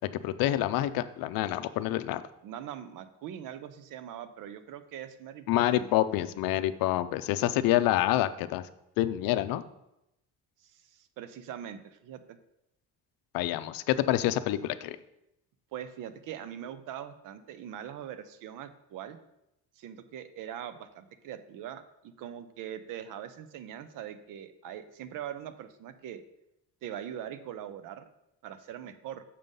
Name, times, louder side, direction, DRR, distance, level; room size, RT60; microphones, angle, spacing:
voice 1, 0.2-2.2 5.5-8.7 9.0-9.6 13.3-15.0, left 14 dB, 85° left, 13 dB, 0.6 m, -27 dB
voice 2, 2.4-5.9 10.6-12.4 15.7-19.2 19.8-26.2 26.8-28.0 28.4-29.2, right 10 dB, 65° right, 11 dB, 0.7 m, -42 dB
6.7 x 5.5 x 5.3 m, 0.86 s
cardioid pair, 165°, 34 cm